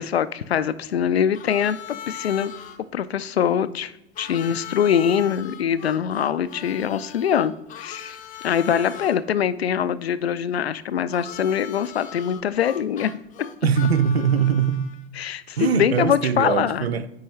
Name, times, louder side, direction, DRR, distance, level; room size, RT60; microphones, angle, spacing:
voice 1, 0.0-1.8 2.1-2.5 2.9-3.9 4.2-8.2 8.4-13.1 15.2-16.9, left 8 dB, 85° left, 0.5 m, -23 dB
Harmonica, 1.3-2.8 4.2-9.2 11.1-15.0, left 10 dB, 25° left, 0.6 m, -39 dB
voice 2, 13.6-14.9 15.6-17.1, right 7 dB, 85° right, 0.5 m, -21 dB
9.3 x 4.6 x 3.2 m
figure-of-eight pair, 85°, 30 cm